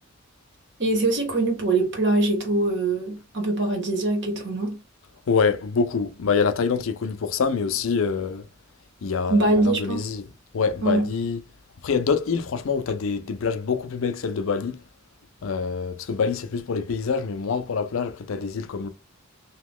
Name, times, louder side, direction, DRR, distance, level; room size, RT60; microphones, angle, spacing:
voice 1, 0.8-4.8 9.3-10.1 10.8-11.1, right 2 dB, 60° right, 1.3 m, -23 dB
voice 2, 5.3-8.4 9.0-10.3 10.5-11.4 11.8-14.8 15.4-18.9, left 5 dB, 75° left, 0.5 m, -25 dB
2.9 x 2.3 x 3.6 m
head